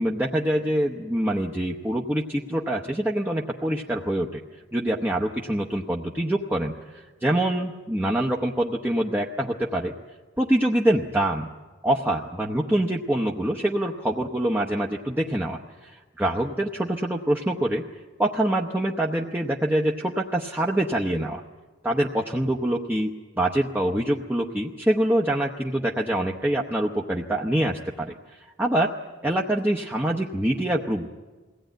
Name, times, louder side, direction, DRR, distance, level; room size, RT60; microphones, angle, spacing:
voice 1, 0.0-4.4 4.7-9.9 10.4-11.5 11.8-17.8 18.2-21.4 21.8-28.9 29.2-31.1, right 1 dB, 10° right, -1 dB, 0.8 m, -25 dB
22.0 x 17.0 x 9.1 m, 1.3 s
head